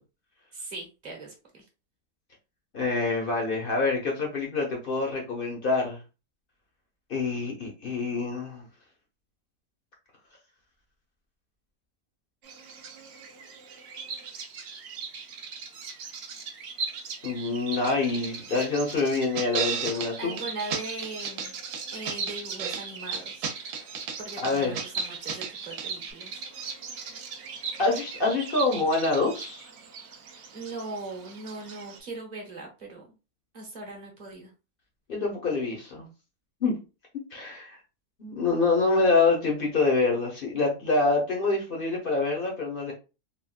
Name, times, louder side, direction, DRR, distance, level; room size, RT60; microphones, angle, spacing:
voice 1, 0.5-1.6 20.2-21.6 21.9-23.5 24.2-26.4 30.5-33.1 33.5-34.5, right 2 dB, 35° right, 0.8 m, -39 dB
voice 2, 2.7-6.0 7.1-8.7 17.2-20.4 24.4-24.8 27.8-29.7 35.1-36.1 36.6-36.8 37.3-37.8 38.2-42.9, left 3 dB, 45° left, 0.8 m, -26 dB
Bird vocalization bird call bird song, 12.4-32.0, right 5 dB, 65° right, 0.8 m, -39 dB
sound 1, 19.4-20.1 20.4-20.5 20.7-21.5 21.7-22.8 23.1-24.2 24.4-25.5 25.8-25.9, right 6 dB, 80° right, 1.1 m, -32 dB
3.5 x 2.2 x 2.3 m
omnidirectional pair, 1.7 m